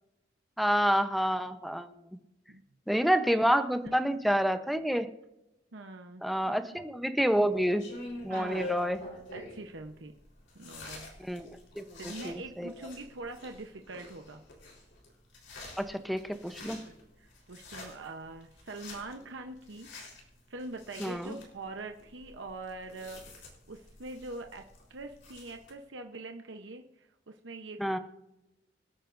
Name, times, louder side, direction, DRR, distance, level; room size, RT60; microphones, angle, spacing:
voice 1, 0.6-1.9 2.9-5.1 6.2-7.8 8.2-9.0 11.2-11.5 11.8-12.7 15.8-16.8 21.0-21.4 27.8-28.0, equal, ahead, 8 dB, 0.8 m, -28 dB
voice 2, 5.7-6.5 8.3-8.9 9.3-10.1 10.5-11.1 12.0-14.4 16.8-19.9 20.5-23.2 23.7-28.0, right 2 dB, 70° right, 4 dB, 0.9 m, -43 dB
sound 1, 7.5-25.7, left 1 dB, 75° left, 4.0 m, -47 dB
26.0 x 9.2 x 2.6 m, 0.91 s
head